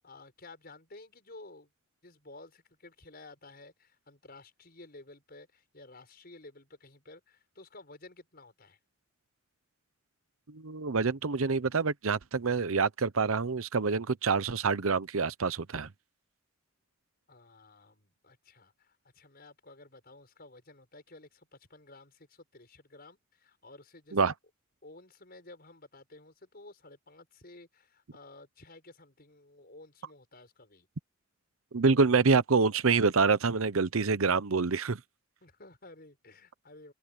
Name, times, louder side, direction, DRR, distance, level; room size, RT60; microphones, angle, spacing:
voice 1, 0.0-1.7 2.0-8.8 17.3-24.3 24.8-30.9 35.4-36.9, left 2 dB, 45° left, 6.4 m, -53 dB
voice 2, 10.5-15.9 24.1-24.3 31.7-35.0, right 4 dB, 80° right, 0.8 m, -26 dB
open air
head